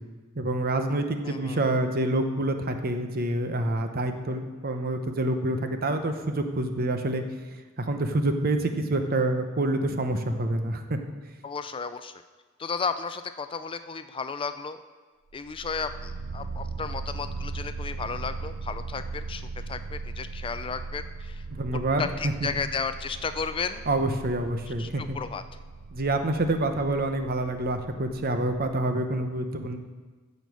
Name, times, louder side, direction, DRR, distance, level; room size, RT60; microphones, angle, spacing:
voice 1, 0.4-7.2 7.8-11.0 21.6-22.5 23.9-25.2 25.9-29.8, right 2 dB, 45° right, 6 dB, 0.9 m, -27 dB
voice 2, 1.2-1.6 11.4-12.1 12.6-14.8 15.3-21.4 22.0-23.9 24.8-25.4, left 5 dB, 25° left, 10 dB, 0.4 m, -33 dB
sound 1, 15.3-28.8, right 3 dB, 90° right, 0.5 m, -39 dB
15.5 x 5.4 x 6.3 m, 1.4 s
head